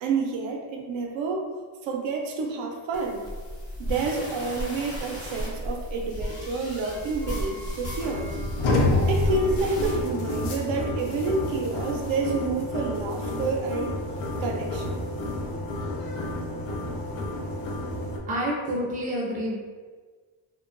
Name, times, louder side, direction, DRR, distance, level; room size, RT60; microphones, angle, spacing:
voice 1, 0.0-1.5 1.8-3.2 3.8-8.3 9.1-13.9 14.4-15.0, right 4 dB, 85° right, 1 dB, 0.6 m, -29 dB
sound 1, 2.9-10.0, equal, 30° left, 0.8 m, -34 dB
sound 2, 8.0-18.2, left 2 dB, 85° left, 0.6 m, -29 dB
voice 2, 18.3-19.6, equal, 20° right, -3 dB, 0.4 m, -28 dB
2.8 x 2.1 x 2.4 m, 1.5 s
cardioid pair, 140°, 45 cm